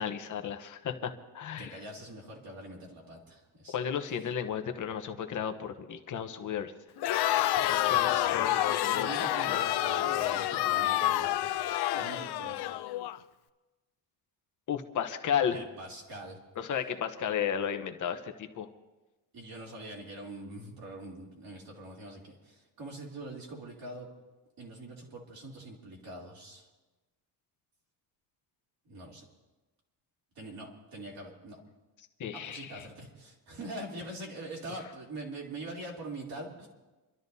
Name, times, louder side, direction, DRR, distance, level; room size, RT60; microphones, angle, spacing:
voice 1, 0.0-1.8 3.7-6.7 7.7-9.6 14.7-15.6 16.6-18.7 32.2-32.9, left 8 dB, 45° left, 7 dB, 1.0 m, -34 dB
voice 2, 1.6-3.8 7.5-12.7 15.5-16.4 19.3-24.1 24.6-26.7 28.8-29.2 30.3-31.6 32.3-36.7, right 1 dB, 55° right, -2 dB, 3.2 m, -43 dB
Crowd, 7.0-13.2, left 14 dB, 65° left, 0.6 m, -28 dB
28.5 x 12.5 x 2.8 m, 1.1 s
cardioid pair, 180°, 43 cm